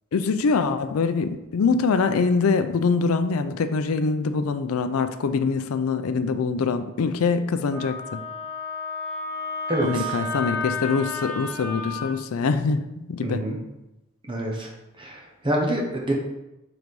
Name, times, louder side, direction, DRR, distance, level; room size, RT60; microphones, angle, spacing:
voice 1, 0.1-8.2 9.8-13.4, left 4 dB, 85° left, 9 dB, 0.4 m, -24 dB
Wind instrument woodwind instrument, 7.7-12.1, left 3 dB, 5° left, 1.3 m, -32 dB
voice 2, 9.7-10.2 13.2-13.6 14.3-14.7 15.0-16.1, right 1 dB, 25° right, -1 dB, 0.8 m, -26 dB
4.6 x 4.0 x 5.2 m, 0.94 s
head